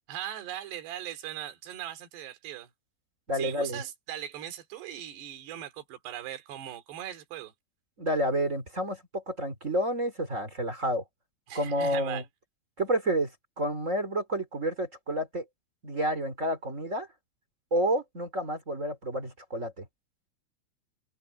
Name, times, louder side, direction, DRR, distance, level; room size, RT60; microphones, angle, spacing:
voice 1, 0.1-2.7 3.3-7.5 11.5-12.3, right 11 dB, 60° right, 4.5 m, -39 dB
voice 2, 3.3-3.8 8.0-11.0 11.5-12.2 12.8-13.3 13.6-15.4 15.8-17.1 17.7-19.8, right 1 dB, 20° right, 2.3 m, -29 dB
open air
omnidirectional pair, 6.0 m